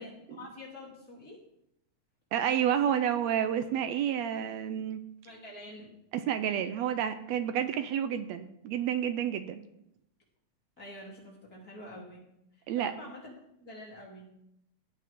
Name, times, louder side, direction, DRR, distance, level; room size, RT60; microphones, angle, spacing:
voice 1, 0.0-1.4 5.2-5.9 10.8-12.3 12.5-13.3 13.6-14.3, left 1 dB, 30° left, -3 dB, 3.3 m, -47 dB
voice 2, 2.3-5.0 6.1-9.6 12.7-12.9, right 9 dB, 75° right, 9 dB, 1.6 m, -30 dB
18.0 x 8.3 x 3.6 m, 0.79 s
omnidirectional pair, 3.6 m